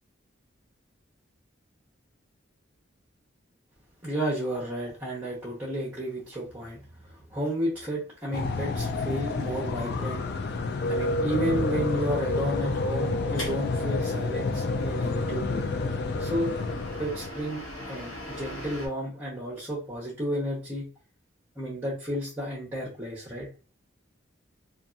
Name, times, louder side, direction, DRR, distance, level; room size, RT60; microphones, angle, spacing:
voice 1, 4.0-10.2 10.9-15.6 16.2-16.5 17.0-20.9 21.6-23.5, equal, 10° right, -7 dB, 0.9 m, -32 dB
sound 1, 8.3-17.3, left 3 dB, 55° left, 0.4 m, -29 dB
sound 2, 13.4-18.9, left 1 dB, 80° left, 0.8 m, -42 dB
2.7 x 2.4 x 2.3 m, 0.35 s
head